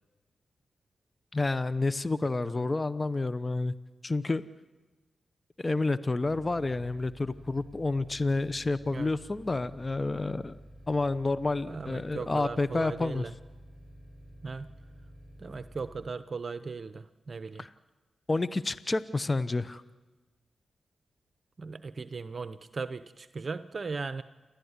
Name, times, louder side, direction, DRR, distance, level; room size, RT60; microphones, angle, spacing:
voice 1, 1.3-3.7 4.0-4.4 5.6-10.6 10.9-13.3 17.6-17.7 18.3-19.8, left 3 dB, 35° left, 15 dB, 0.8 m, -29 dB
sound 1, 6.2-16.1, equal, 5° right, 6.6 m, -51 dB
voice 2, 11.7-13.3 14.4-14.7 15.4-17.6 21.6-24.2, right 4 dB, 55° right, 12 dB, 0.7 m, -37 dB
28.5 x 13.0 x 9.6 m, 1.2 s
cardioid pair, 45°, 0 cm